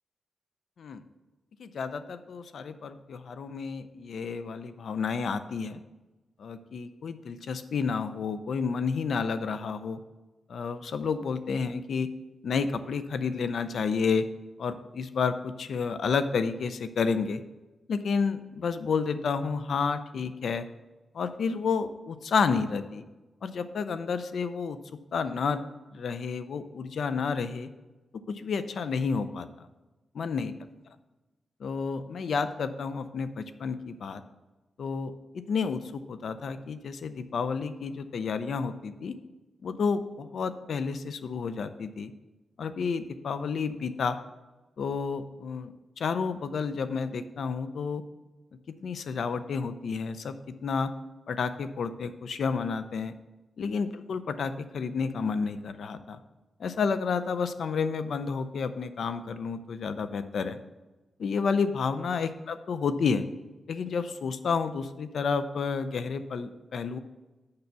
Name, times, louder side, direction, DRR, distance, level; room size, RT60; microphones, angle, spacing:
voice 1, 1.6-5.8 6.4-10.0 10.5-12.1 12.4-14.2 14.6-17.4 17.9-20.7 21.1-23.0 23.4-24.8 25.1-25.6 25.9-27.7 28.3-29.5 30.1-30.5 31.6-34.2 34.8-39.2 39.6-42.1 42.6-44.2 44.8-48.0 48.8-50.4 50.6-50.9 51.3-53.1 53.6-56.2 56.6-60.6 61.2-63.3 63.7-67.0, left 5 dB, 70° left, 11 dB, 0.5 m, -30 dB
6.7 x 5.7 x 6.8 m, 1.1 s
wide cardioid pair, 110°, 0 cm